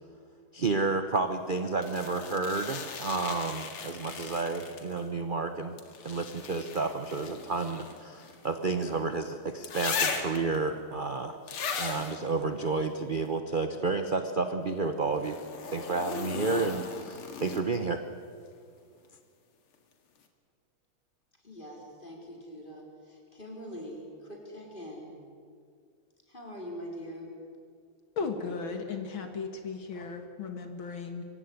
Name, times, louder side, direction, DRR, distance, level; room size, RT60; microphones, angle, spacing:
voice 1, 0.5-5.8 6.0-11.4 11.8-15.4 15.7-18.0, right 3 dB, 50° right, 7 dB, 0.5 m, -31 dB
sound 1, 1.8-5.1 5.8-9.0 9.6-10.6 11.5-12.1 15.2-17.8 19.7-19.8, left 5 dB, 90° left, 2.8 m, -37 dB
voice 2, 21.4-25.1 26.3-27.3, equal, 20° left, 0 dB, 4.4 m, -43 dB
voice 3, 28.2-31.2, left 4 dB, 65° left, 6 dB, 2.3 m, -36 dB
24.0 x 16.0 x 9.4 m, 2.2 s
omnidirectional pair, 2.3 m